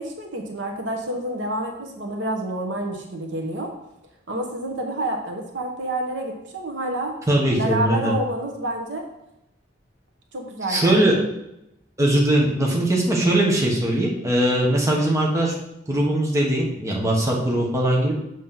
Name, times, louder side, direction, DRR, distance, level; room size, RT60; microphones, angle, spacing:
voice 1, 0.0-3.7 4.3-7.1 7.5-9.0 10.3-11.0, right 1 dB, 75° right, 2 dB, 1.1 m, -28 dB
voice 2, 7.3-8.1 10.7-11.1 12.0-15.5 15.9-18.1, right 1 dB, 15° right, -2 dB, 1.2 m, -20 dB
7.3 x 3.1 x 5.7 m, 0.86 s
head